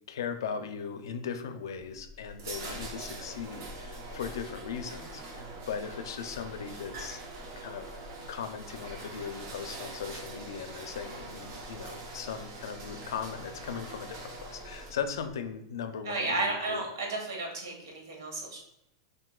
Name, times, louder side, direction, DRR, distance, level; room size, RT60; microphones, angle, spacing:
voice 1, 0.1-7.2 7.6-8.0 8.3-16.8, left 7 dB, 85° left, 8 dB, 0.5 m, -38 dB
sound 1, 1.9-15.3, right 2 dB, 60° right, 0.8 m, -43 dB
voice 2, 16.0-18.6, right 2 dB, 85° right, 1 dB, 1.4 m, -33 dB
6.0 x 2.6 x 2.3 m, 0.85 s
supercardioid pair, 140°, 2 cm